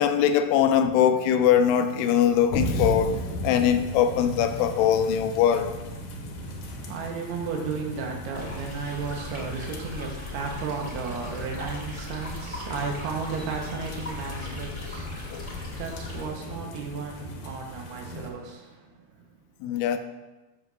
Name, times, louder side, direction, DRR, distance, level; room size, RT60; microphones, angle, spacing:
voice 1, 0.0-5.7 15.3-15.5 19.6-20.0, left 9 dB, 85° left, 2.6 m, -22 dB
sound 1, 2.5-18.3, equal, 70° left, 2.2 m, -37 dB
voice 2, 6.4-19.3, right 5 dB, 85° right, 3.0 m, -34 dB
sound 2, 8.3-16.3, left 3 dB, 20° left, 0.9 m, -38 dB
13.5 x 6.2 x 2.6 m
omnidirectional pair, 4.5 m